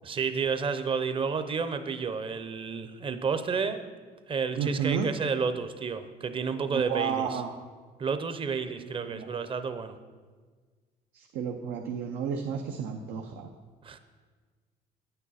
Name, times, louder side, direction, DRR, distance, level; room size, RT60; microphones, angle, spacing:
voice 1, 0.0-3.9 4.3-7.4 8.0-10.0 13.8-14.0, right 5 dB, 30° right, 10 dB, 0.7 m, -31 dB
voice 2, 4.6-5.1 6.7-7.5 8.8-9.3 11.1-13.5, right 7 dB, 85° right, 2 dB, 0.7 m, -32 dB
9.3 x 8.9 x 4.1 m, 1.5 s
cardioid pair, 110°, 17 cm